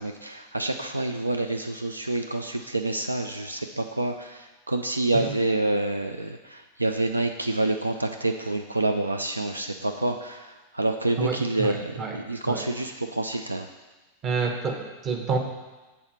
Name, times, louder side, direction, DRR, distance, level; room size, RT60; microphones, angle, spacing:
voice 1, 0.0-13.7, right 2 dB, 85° right, 6 dB, 0.3 m, -28 dB
voice 2, 11.2-12.2 12.5-12.6 14.2-15.4, right 5 dB, 30° right, 4 dB, 1.0 m, -29 dB
7.1 x 4.2 x 5.7 m, 1.2 s
figure-of-eight pair, 90°, 0 cm